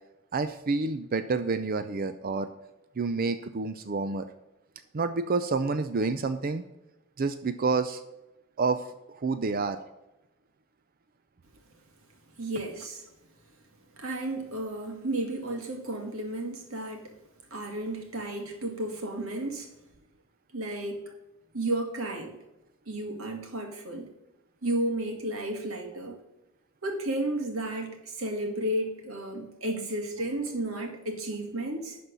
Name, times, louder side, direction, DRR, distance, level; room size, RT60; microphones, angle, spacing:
voice 1, 0.3-2.5 3.0-4.3 4.9-6.6 7.2-8.0 8.6-9.8, right 4 dB, 45° right, 10 dB, 0.5 m, -28 dB
voice 2, 12.4-13.1 13.9-17.1 17.5-19.7 20.5-21.1 21.5-22.4 22.9-24.1 24.6-26.2 26.8-32.0, right 1 dB, 75° right, 2 dB, 2.3 m, -33 dB
11.5 x 4.3 x 6.7 m, 0.97 s
head